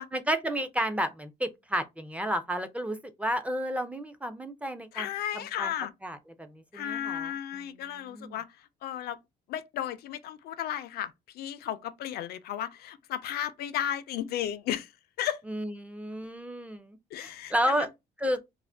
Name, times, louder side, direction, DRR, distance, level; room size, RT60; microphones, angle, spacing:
voice 1, 0.1-5.7 6.0-8.4 15.5-17.9 18.2-18.4, equal, 10° right, 0.4 m, -32 dB
voice 2, 4.9-5.9 6.7-8.5 8.8-9.2 9.5-14.9 15.2-15.4 17.1-17.9, left 11 dB, 70° left, 0.4 m, -34 dB
2.4 x 2.1 x 3.3 m
cardioid pair, 110°, 17 cm